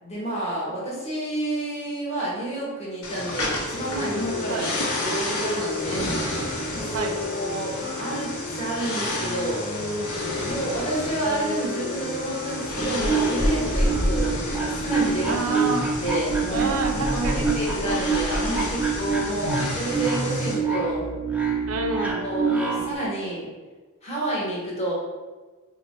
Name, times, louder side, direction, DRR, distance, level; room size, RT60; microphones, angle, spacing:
voice 1, 0.0-4.6 5.0-6.1 6.7-6.9 7.3-9.9 10.5-15.4 16.0-21.1 22.2-23.5 24.0-24.9, right 1 dB, 30° left, -6 dB, 1.0 m, -30 dB
sound 1, 3.0-20.6, left 1 dB, 80° left, 0.8 m, -32 dB
sound 2, 3.7-15.7, left 2 dB, 45° left, 0.5 m, -33 dB
voice 2, 10.4-10.7 13.9-14.1 15.3-15.9 16.5-17.4 17.8-18.0 19.2-19.6 21.7-22.3, right 3 dB, 65° right, 4 dB, 0.5 m, -30 dB
sound 3, 12.8-22.9, right 3 dB, 5° right, 0.3 m, -26 dB
4.3 x 2.1 x 3.0 m, 1.3 s
head